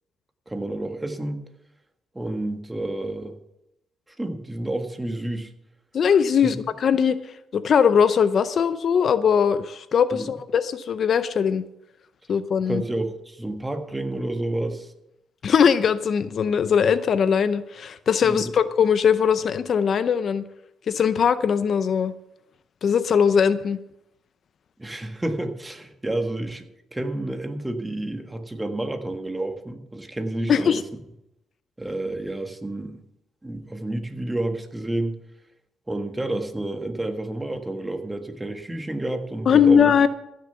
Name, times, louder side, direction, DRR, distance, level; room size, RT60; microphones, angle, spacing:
voice 1, 0.5-1.4 2.1-3.3 4.2-5.5 6.4-6.5 10.1-10.3 12.6-14.9 18.2-18.5 24.8-30.8 31.8-33.0 33.4-35.2 35.9-40.1, right 1 dB, 15° right, 6 dB, 1.5 m, -30 dB
voice 2, 5.9-7.2 7.5-11.6 12.3-12.8 15.4-20.4 20.9-22.1 22.8-23.8 30.5-30.8 39.5-40.1, left 7 dB, 55° left, 13 dB, 0.6 m, -20 dB
15.0 x 6.7 x 6.9 m, 0.86 s
cardioid pair, 90°, 0 cm